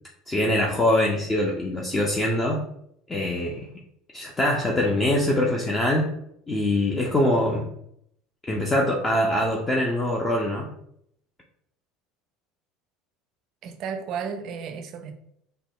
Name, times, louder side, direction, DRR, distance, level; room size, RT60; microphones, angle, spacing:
voice 1, 0.3-2.6 3.1-3.7 4.1-6.1 6.5-7.7 8.5-10.7, left 1 dB, 20° left, 0.5 m, -23 dB
voice 2, 13.6-15.1, right 6 dB, 50° right, 0.4 m, -33 dB
3.5 x 2.1 x 2.2 m
figure-of-eight pair, 70°, 0 cm